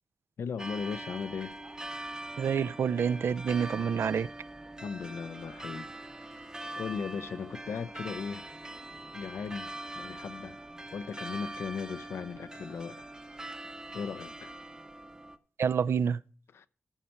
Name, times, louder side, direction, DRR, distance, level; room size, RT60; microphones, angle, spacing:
voice 1, 0.4-1.5 4.8-8.4 9.1-10.6 10.9-13.1 13.9-14.6 16.5-16.7, left 6 dB, 85° left, 0.5 m, -38 dB
sound 1, 0.6-15.4, right 1 dB, 15° right, 0.7 m, -43 dB
voice 2, 2.4-4.3 15.6-16.2, right 7 dB, 70° right, 0.4 m, -28 dB
14.5 x 5.6 x 4.4 m
wide cardioid pair, 110°, 4 cm